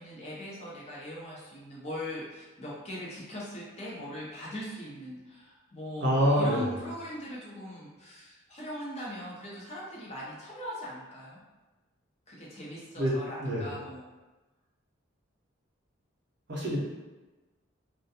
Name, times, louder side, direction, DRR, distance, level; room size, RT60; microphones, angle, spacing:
voice 1, 0.0-11.4 12.3-14.0, equal, 30° left, -6 dB, 0.5 m, -40 dB
voice 2, 6.0-6.7 13.0-13.1 13.4-13.7 16.5-16.8, equal, 55° right, -5 dB, 0.6 m, -26 dB
2.3 x 2.2 x 2.7 m, 1.2 s
head